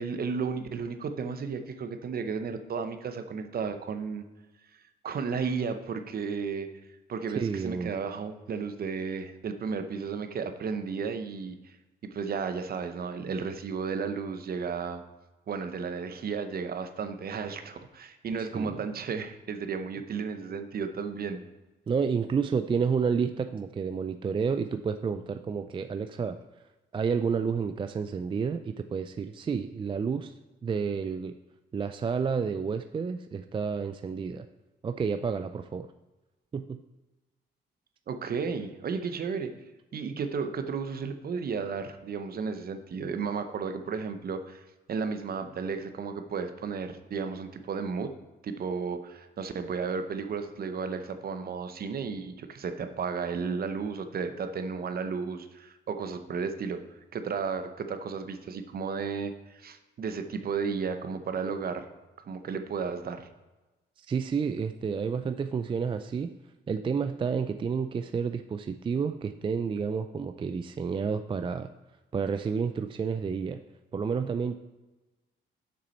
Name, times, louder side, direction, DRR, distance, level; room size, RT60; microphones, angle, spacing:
voice 1, 0.0-4.2 5.0-6.7 7.1-11.8 12.1-15.0 15.5-21.4 38.1-39.5 39.9-44.6 44.9-48.1 48.4-56.8 57.1-61.9 62.3-63.3, right 5 dB, 50° right, 8 dB, 0.8 m, -33 dB
voice 2, 7.4-7.9 18.5-18.8 21.9-26.4 26.9-30.3 30.6-31.3 31.7-34.5 34.8-35.9 36.5-36.8 64.0-66.3 66.7-71.7 72.1-73.6 73.9-74.6, right 6 dB, 25° right, 8 dB, 0.3 m, -30 dB
7.0 x 6.1 x 4.3 m, 1.1 s
cardioid pair, 90°, 20 cm